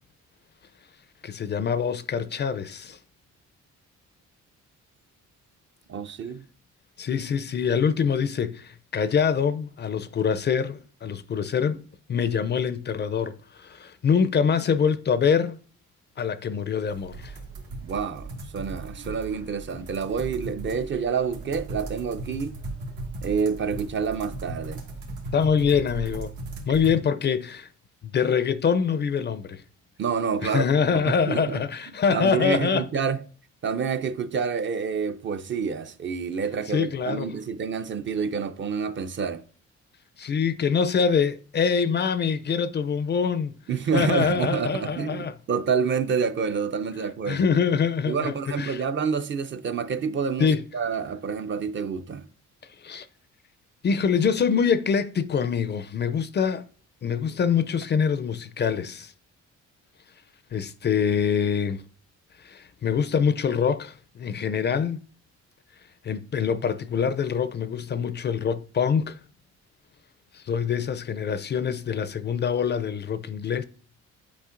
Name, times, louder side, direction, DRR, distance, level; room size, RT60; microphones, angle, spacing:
voice 1, 1.2-3.0 7.0-11.8 12.1-15.6 16.2-17.4 25.3-26.3 26.7-27.7 28.0-29.6 30.4-32.9 36.7-37.3 40.2-43.5 43.9-45.3 47.3-48.8 50.4-50.6 52.8-53.1 53.8-56.7 57.0-59.1 60.5-61.8 62.4-65.0 66.0-69.2 70.3-73.6, left 6 dB, 35° left, 0.4 m, -25 dB
voice 2, 5.9-6.4 17.8-22.6 23.2-24.8 30.0-30.7 30.9-31.6 32.1-33.2 33.6-39.4 43.7-47.5 48.1-52.3, right 6 dB, 40° right, 0.5 m, -28 dB
sound 1, 16.9-26.9, right 2 dB, 90° right, 1.6 m, -37 dB
8.4 x 5.0 x 2.5 m
cardioid pair, 90°, 30 cm